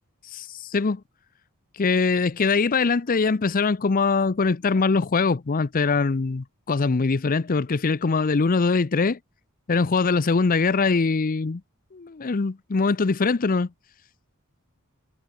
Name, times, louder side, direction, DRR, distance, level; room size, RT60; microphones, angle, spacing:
voice 1, 0.3-1.0 1.8-9.2 9.7-11.6 11.9-13.7, left 4 dB, 40° left, 0.6 m, -22 dB
head